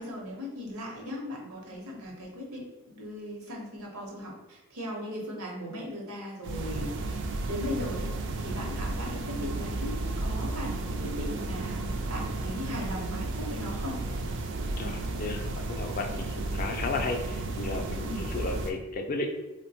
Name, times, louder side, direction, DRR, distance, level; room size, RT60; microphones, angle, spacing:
voice 1, 0.0-8.1 8.4-14.0 18.0-18.2, left 1 dB, 75° right, -1 dB, 0.8 m, -38 dB
sound 1, 6.4-18.7, right 2 dB, 55° right, 0.3 m, -33 dB
voice 2, 14.8-19.3, left 3 dB, 40° left, 4 dB, 0.3 m, -34 dB
3.3 x 2.1 x 2.7 m, 1.1 s
head